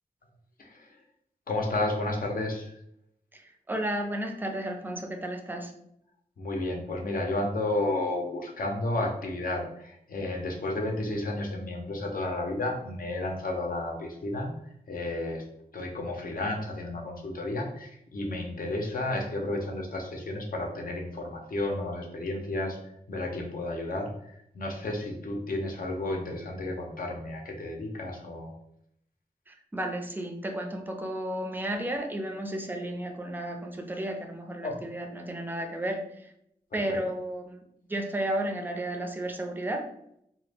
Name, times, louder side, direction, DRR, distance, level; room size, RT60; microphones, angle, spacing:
voice 1, 0.6-0.9 1.5-2.7 6.4-14.5 14.9-15.4 15.7-22.8 23.1-28.5 34.6-34.7 36.9-37.0, left 2 dB, 65° left, 1 dB, 0.6 m, -32 dB
voice 2, 3.3-5.7 29.5-36.3 36.7-37.6 37.9-39.9, right 1 dB, 10° right, 4 dB, 0.4 m, -33 dB
2.1 x 2.0 x 3.3 m, 0.74 s
cardioid pair, 45°, 16 cm